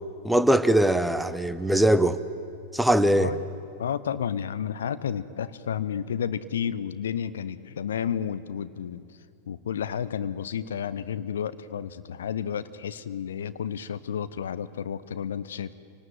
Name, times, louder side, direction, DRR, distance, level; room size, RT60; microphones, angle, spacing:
voice 1, 0.2-2.2 2.7-3.3, right 1 dB, 5° right, 13 dB, 0.9 m, -21 dB
voice 2, 3.8-9.1 9.5-15.7, left 8 dB, 65° left, 14 dB, 0.8 m, -31 dB
26.5 x 18.5 x 9.2 m, 2.6 s
figure-of-eight pair, 90°, 0 cm